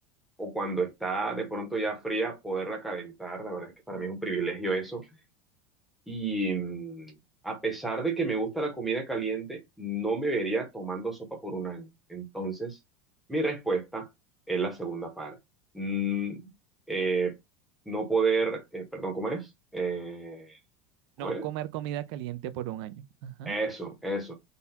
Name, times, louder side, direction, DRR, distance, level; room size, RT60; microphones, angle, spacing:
voice 1, 0.4-5.1 6.1-7.1 7.4-12.8 13.3-14.1 14.5-15.4 15.7-16.5 16.9-17.3 17.9-20.6 21.2-21.4 23.5-24.3, right 3 dB, ahead, 0.9 m, -31 dB
voice 2, 21.2-23.5, right 13 dB, 60° right, 0.6 m, -36 dB
3.9 x 2.3 x 4.2 m
supercardioid pair, 155°, 16 cm